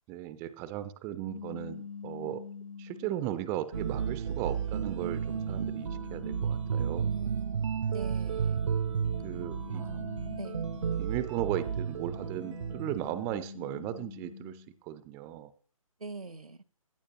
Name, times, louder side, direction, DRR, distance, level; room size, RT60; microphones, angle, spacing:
voice 1, 0.1-2.4 2.8-7.1 9.2-9.8 11.0-15.5, right 13 dB, 15° right, 0.5 m, -36 dB
sound 1, 1.2-3.4 4.1-7.2 8.3-11.3 11.7-14.7, left 6 dB, 70° left, 0.6 m, -46 dB
sound 2, 3.7-13.3, right 7 dB, 55° right, 0.6 m, -33 dB
voice 2, 7.0-8.6 9.7-10.6 16.0-16.6, right 3 dB, 85° right, 0.9 m, -43 dB
16.0 x 10.0 x 2.9 m
figure-of-eight pair, 135°, 18 cm